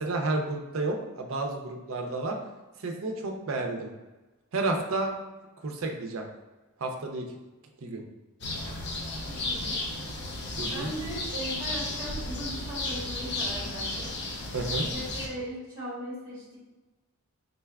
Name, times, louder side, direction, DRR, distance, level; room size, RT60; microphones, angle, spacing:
voice 1, 0.0-2.4 2.8-3.9 4.5-5.1 5.6-6.2 6.8-7.2 7.8-8.0 10.6-10.9 14.5-14.8, right 2 dB, 65° right, 2 dB, 0.5 m, -31 dB
sound 1, 8.4-15.3, left 2 dB, 50° left, 0.5 m, -33 dB
voice 2, 9.2-9.8 10.7-14.1 14.9-16.6, right 1 dB, 20° right, -7 dB, 1.3 m, -38 dB
3.9 x 3.3 x 2.3 m, 1.1 s
head